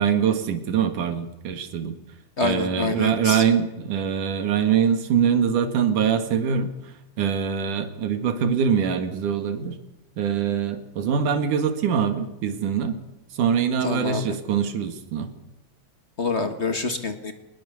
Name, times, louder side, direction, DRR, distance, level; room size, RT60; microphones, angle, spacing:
voice 1, 0.0-2.0 2.4-6.7 7.2-9.8 10.2-12.9 13.4-15.3, right 7 dB, 90° right, 9 dB, 3.4 m, -23 dB
voice 2, 2.4-3.4 13.8-14.2 16.2-17.3, left 3 dB, 35° left, 8 dB, 1.2 m, -26 dB
23.0 x 20.0 x 7.1 m, 0.91 s
omnidirectional pair, 3.5 m